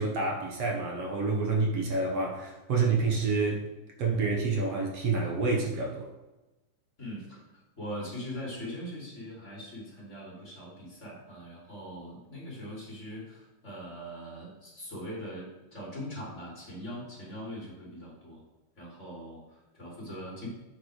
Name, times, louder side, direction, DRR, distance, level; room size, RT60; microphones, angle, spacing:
voice 1, 0.0-3.7 4.0-6.1, right 3 dB, 60° right, -1 dB, 1.7 m, -28 dB
voice 2, 7.0-18.4 18.8-20.5, equal, 20° left, -5 dB, 2.7 m, -41 dB
10.0 x 8.3 x 3.3 m, 1.1 s
omnidirectional pair, 4.4 m